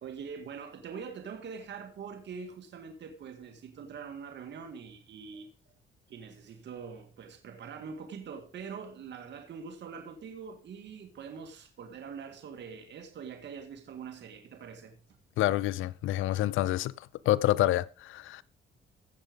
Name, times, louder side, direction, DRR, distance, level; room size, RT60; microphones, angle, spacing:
voice 1, 0.0-5.5 6.1-15.0, right 6 dB, 65° right, 2.0 m, -43 dB
voice 2, 15.4-18.4, left 14 dB, 80° left, 0.6 m, -28 dB
16.0 x 6.7 x 5.2 m
cardioid pair, 90°, 20 cm